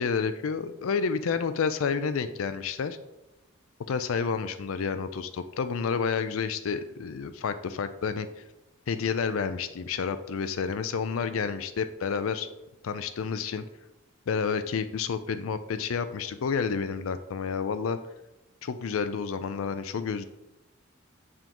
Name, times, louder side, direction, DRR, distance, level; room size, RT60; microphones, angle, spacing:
voice 1, 0.0-3.0 3.9-8.3 8.9-12.5 12.8-13.6 14.3-18.0 18.6-20.2, left 5 dB, 80° left, 11 dB, 0.4 m, -30 dB
9.0 x 3.7 x 2.9 m, 0.94 s
head